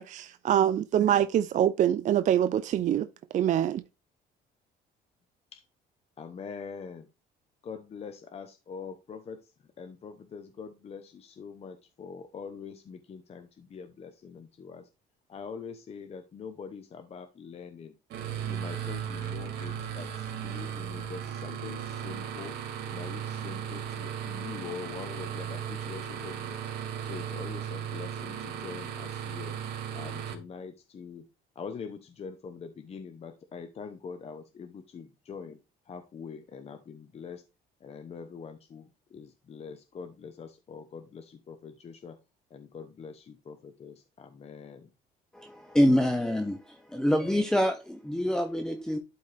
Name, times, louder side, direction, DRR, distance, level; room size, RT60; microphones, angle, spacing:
voice 1, 0.0-3.1 3.3-3.8, right 10 dB, 45° right, 0.4 m, -25 dB
voice 2, 6.2-7.1 7.6-14.9 15.3-18.0 18.4-22.6 22.9-26.6 27.0-29.6 29.9-31.3 31.5-35.6 35.9-37.4 37.8-42.2 42.5-44.9, left 6 dB, 40° left, 0.9 m, -44 dB
sound 1, 18.1-30.3, right 9 dB, 80° right, 2.4 m, -36 dB
voice 3, 45.8-46.5 47.0-47.7 48.1-49.0, equal, 5° left, 0.7 m, -24 dB
12.0 x 4.2 x 3.4 m
cardioid pair, 110°, 17 cm